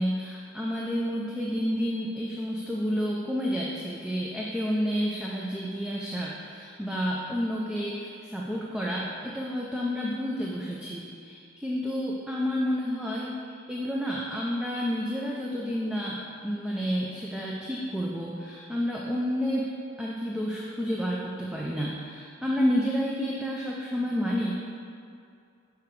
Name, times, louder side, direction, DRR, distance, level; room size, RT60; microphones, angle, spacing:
voice 1, 0.0-19.7 20.0-24.6, equal, 5° right, -4 dB, 0.4 m, -30 dB
6.6 x 4.8 x 4.6 m, 2.4 s
head